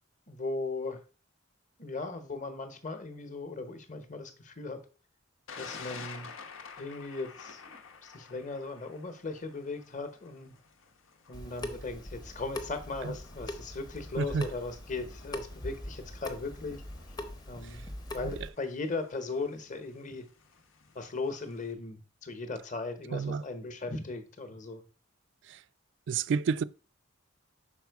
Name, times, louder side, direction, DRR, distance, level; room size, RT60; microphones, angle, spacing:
voice 1, 0.3-1.0 1.8-4.8 5.6-6.3 6.8-7.8 8.1-10.5 11.3-16.8 17.5-20.3 20.9-24.8, left 3 dB, 40° left, 1.0 m, -38 dB
Thunder, 5.5-21.7, left 5 dB, 90° left, 0.9 m, -51 dB
Water tap faucet / Sink (filling or washing) / Drip, 11.3-18.5, left 1 dB, 20° left, 0.7 m, -42 dB
voice 2, 23.1-23.4 26.1-26.6, right 5 dB, 65° right, 0.3 m, -29 dB
6.0 x 4.5 x 4.6 m
head